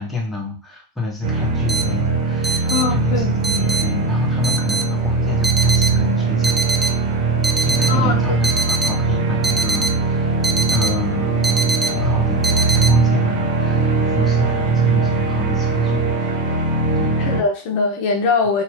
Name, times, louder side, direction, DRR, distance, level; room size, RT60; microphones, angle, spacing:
voice 1, 0.0-7.0 7.6-16.3 16.9-17.2, left 4 dB, 10° left, 1.0 m, -28 dB
sound 1, 1.2-17.4, right 4 dB, 65° right, 1.0 m, -20 dB
sound 2, 1.7-12.9, right 3 dB, 15° right, 0.3 m, -24 dB
voice 2, 2.7-3.4 7.8-8.2 17.2-18.6, left 4 dB, 60° left, 0.6 m, -21 dB
2.8 x 2.3 x 3.1 m
hypercardioid pair, 120°, 0 cm